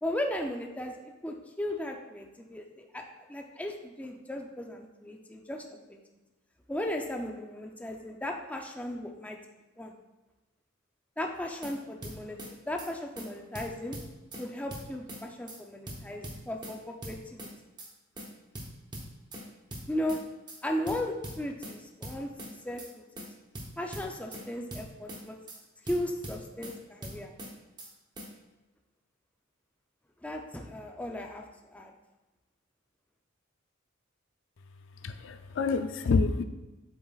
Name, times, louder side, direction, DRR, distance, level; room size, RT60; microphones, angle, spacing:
voice 1, 0.0-6.0 6.7-9.4 9.8-9.9 11.2-12.4 12.6-14.0 14.4-17.5 19.9-20.2 20.6-23.3 23.8-25.4 25.8-27.3 30.2-31.4 31.7-31.9, left 1 dB, 5° left, 2 dB, 0.5 m, -36 dB
sound 1, 11.4-11.7 12.0-12.5 12.8-12.9 13.2-13.3 13.5-14.4 14.7-15.2 15.5-15.6 15.9-16.7 17.0-17.5 17.8-17.9 18.2-18.3 18.5-19.4 19.7-20.2 20.5-20.6 20.9-21.7 22.0-22.5 22.8-22.9 23.2-23.3 23.5-24.4 24.7-25.2 25.5-25.6 25.9-26.7 27.0-27.5 27.8-27.9 28.2-28.3, equal, 20° right, 0.9 m, -41 dB
voice 2, 35.0-36.4, left 4 dB, 60° left, 9 dB, 0.4 m, -27 dB
7.8 x 7.1 x 2.4 m, 1.1 s
head